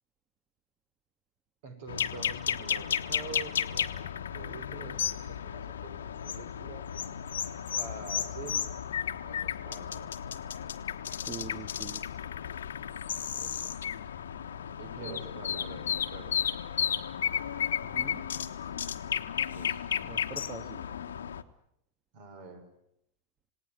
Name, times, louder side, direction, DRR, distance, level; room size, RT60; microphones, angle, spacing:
voice 1, 1.6-6.8 7.7-8.7 9.2-10.1 13.3-13.8 14.8-16.5 19.4-19.8 22.1-22.6, right 4 dB, 50° right, 8 dB, 5.9 m, -46 dB
sound 1, 1.9-21.4, left 8 dB, 65° left, 1.3 m, -33 dB
voice 2, 11.1-12.0 15.0-15.3 17.8-18.2 20.0-20.8, right 5 dB, 25° right, 10 dB, 1.6 m, -44 dB
28.0 x 18.5 x 10.0 m, 0.77 s
figure-of-eight pair, 90°, 0 cm